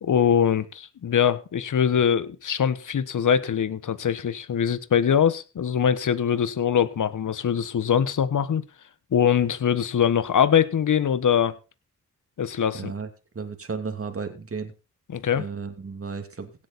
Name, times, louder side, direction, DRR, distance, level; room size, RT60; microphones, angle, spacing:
voice 1, 0.0-8.6 9.1-11.6 12.4-12.9 15.1-15.4, left 8 dB, 65° left, 1.3 m, -22 dB
voice 2, 12.7-13.1 13.3-14.7 15.3-16.5, right 5 dB, 40° right, 2.8 m, -33 dB
17.0 x 8.4 x 4.2 m
cardioid pair, 55°, 34 cm